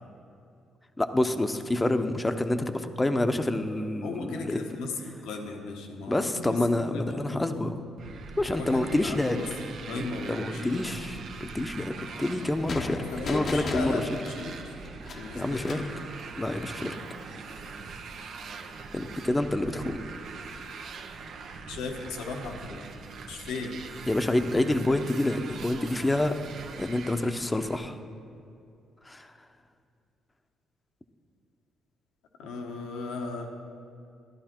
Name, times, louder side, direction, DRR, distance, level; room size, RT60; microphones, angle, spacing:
voice 1, 1.0-4.6 6.1-7.7 8.4-9.4 10.3-11.1 11.4-14.0 15.3-15.8 16.4-17.0 18.9-20.0 24.1-26.3 26.7-28.0 29.0-29.3, left 1 dB, 20° left, 8 dB, 0.9 m, -27 dB
voice 2, 4.0-7.6 8.5-10.8 13.0-14.7 15.2-16.0 18.6-18.7 21.7-22.9 23.3-23.7 32.4-33.5, left 3 dB, 80° left, 3 dB, 1.3 m, -36 dB
Motorcycle, 8.0-27.8, right 4 dB, 70° right, 1.0 m, -42 dB
sound 1, 12.7-16.0, left 3 dB, 55° left, 1.0 m, -37 dB
14.5 x 11.0 x 4.5 m, 2.5 s
supercardioid pair, 55°, 0 cm